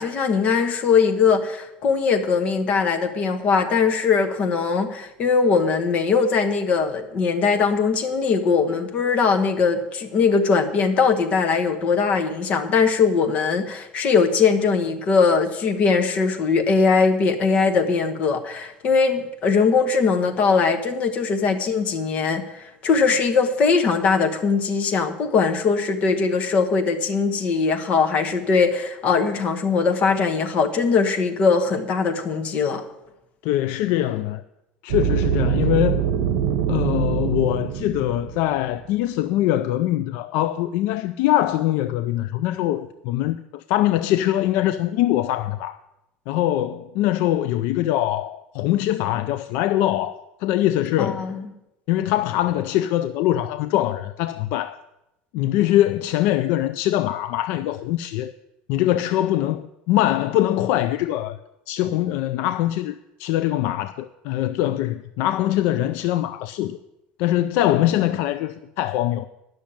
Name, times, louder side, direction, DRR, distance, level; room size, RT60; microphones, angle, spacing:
voice 1, 0.0-32.8 51.0-51.5, left 5 dB, 35° left, 1.2 m, -20 dB
voice 2, 33.4-34.4 34.8-36.0 36.7-45.8 46.3-50.1 50.4-51.3 51.9-54.8 55.3-58.3 58.7-61.4 61.7-66.8 67.2-69.3, left 13 dB, 60° left, 0.4 m, -22 dB
sound 1, 34.9-38.9, right 9 dB, 75° right, 0.9 m, -24 dB
10.5 x 6.4 x 8.6 m
cardioid pair, 165°, 4 cm